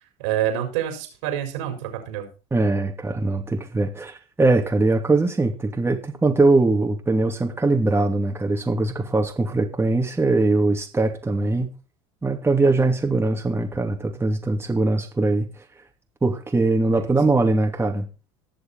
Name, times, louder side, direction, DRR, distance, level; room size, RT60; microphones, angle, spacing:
voice 1, 0.2-2.3, right 11 dB, 80° right, 4.8 m, -27 dB
voice 2, 2.5-11.7 12.2-15.5 16.2-18.1, right 2 dB, 15° right, 2.7 m, -21 dB
19.0 x 6.8 x 4.3 m
supercardioid pair, 85°, 15 cm